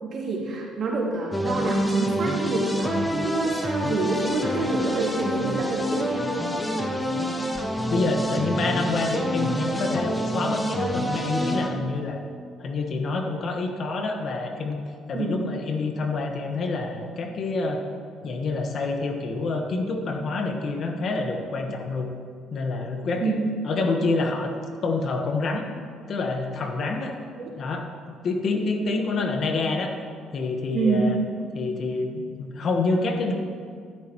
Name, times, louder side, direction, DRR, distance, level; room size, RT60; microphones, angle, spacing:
voice 1, 0.0-6.5 15.1-15.3 23.2-23.3 27.4-27.5 28.5-28.6 30.7-31.0, right 3 dB, 50° right, -4 dB, 3.0 m, -27 dB
sound 1, 1.3-11.7, equal, 5° left, 1.1 m, -27 dB
voice 2, 7.9-12.2 12.6-17.8 18.2-22.1 22.5-23.4 23.6-24.5 24.8-25.7 26.1-27.1 27.5-27.9 28.2-29.9 30.3-31.2 31.5-33.3, left 3 dB, 55° left, 4 dB, 1.3 m, -27 dB
13.0 x 12.0 x 3.1 m, 2.1 s
cardioid pair, 95°, 0 cm